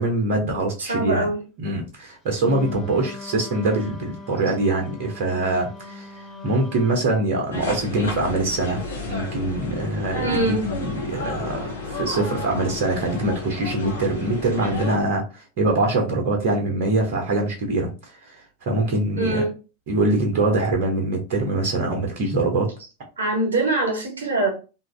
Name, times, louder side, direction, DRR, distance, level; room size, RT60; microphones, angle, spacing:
voice 1, 0.0-1.3 1.6-17.9 18.2-18.4 18.6-19.4 19.9-22.7, right 2 dB, 50° right, 1 dB, 0.8 m, -23 dB
voice 2, 0.8-1.4 10.2-10.6 19.2-19.5 23.2-24.5, right 2 dB, 75° right, 2 dB, 0.9 m, -23 dB
Wind instrument woodwind instrument, 2.4-7.1, left 5 dB, 30° left, 0.5 m, -39 dB
sound 1, 7.5-15.0, left 3 dB, 70° left, 0.8 m, -32 dB
2.8 x 2.4 x 3.3 m, 0.32 s
figure-of-eight pair, 85°, 0 cm